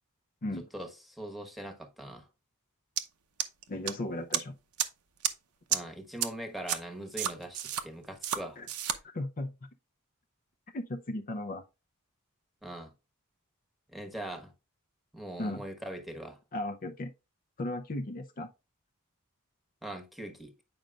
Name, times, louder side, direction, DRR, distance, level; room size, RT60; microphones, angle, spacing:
voice 1, 0.7-2.3 5.7-8.6 12.6-12.9 13.9-14.5 15.1-16.4 19.8-20.5, right 1 dB, ahead, 1.2 m, -41 dB
sound 1, 3.0-3.1 3.4-3.9 4.3-4.4 4.8-4.9 5.2-5.3 5.7-5.8 6.2-6.3 6.7-6.8 7.2-7.8 8.2-8.4 8.7-9.0, right 10 dB, 75° right, 0.9 m, -30 dB
voice 2, 3.7-4.6 8.6-8.7 9.0-9.5 10.7-11.6 15.4-15.6 16.5-17.1 17.6-18.5, left 1 dB, 40° left, 0.6 m, -36 dB
8.9 x 5.2 x 2.4 m
head